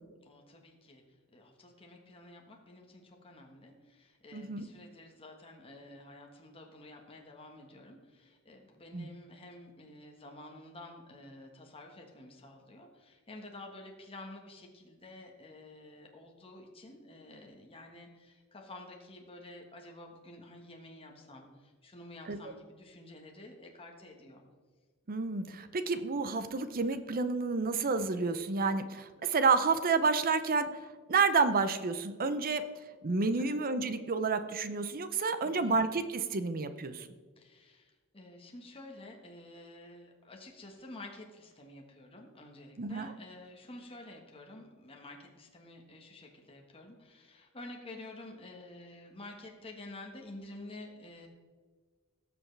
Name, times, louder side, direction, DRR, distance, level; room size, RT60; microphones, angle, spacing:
voice 1, 0.2-1.0 1.3-24.4 33.4-33.6 35.4-35.8 37.4-51.3, left 2 dB, 25° left, 1 dB, 1.3 m, -50 dB
voice 2, 4.3-4.7 8.9-9.1 22.3-22.4 25.1-30.7 31.1-32.6 33.0-37.1 42.8-43.1, right 4 dB, 40° right, 11 dB, 0.6 m, -30 dB
17.5 x 6.8 x 3.3 m, 1.4 s
head